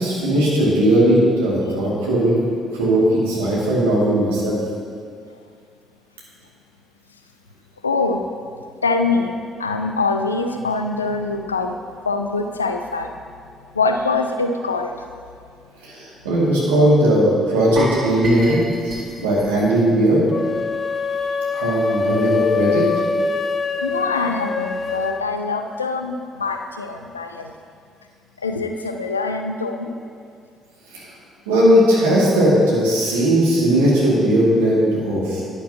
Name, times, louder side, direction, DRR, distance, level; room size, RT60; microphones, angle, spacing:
voice 1, 0.0-2.4 2.7-4.6 15.8-20.2 21.5-22.8 30.9-31.1 31.5-35.4, right 1 dB, 80° right, -5 dB, 2.2 m, -18 dB
voice 2, 7.8-8.2 8.8-9.3 9.6-11.8 12.0-13.1 13.7-15.1 23.8-27.5 28.4-29.9, left 3 dB, 90° left, 6 dB, 0.4 m, -23 dB
sound 1, 17.8-20.8 21.0-21.2 21.7-21.8, right 1 dB, 45° right, 2.5 m, -32 dB
sound 2, 20.3-25.3, left 5 dB, 35° left, 0.5 m, -24 dB
11.0 x 10.5 x 2.8 m, 2.2 s
figure-of-eight pair, 50°, 0 cm